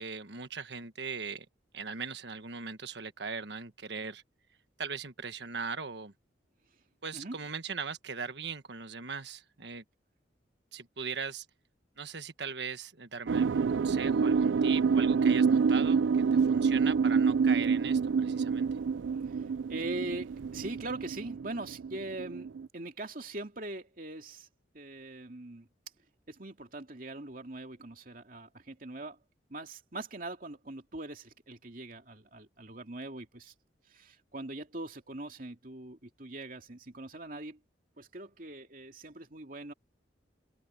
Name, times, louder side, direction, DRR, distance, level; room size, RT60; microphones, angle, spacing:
voice 1, 0.0-1.5 1.7-4.2 4.8-6.1 7.0-9.8 10.7-11.4 12.0-18.7, right 5 dB, 70° right, 1.4 m, -39 dB
sound 1, 13.3-22.7, right 5 dB, 90° right, 0.4 m, -27 dB
voice 2, 19.7-24.5 24.7-25.7 26.3-29.2 29.5-33.5 33.9-37.6 38.0-39.7, right 2 dB, 50° right, 2.6 m, -42 dB
head